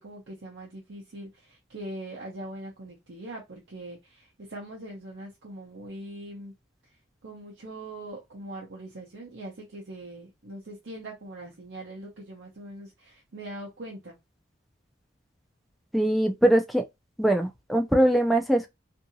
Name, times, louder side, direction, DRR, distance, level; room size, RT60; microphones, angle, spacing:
voice 1, 0.0-6.5 7.2-14.2, right 1 dB, 65° right, 0.8 m, -41 dB
voice 2, 15.9-16.8 17.2-18.7, right 1 dB, ahead, 0.3 m, -22 dB
2.7 x 2.6 x 2.6 m
head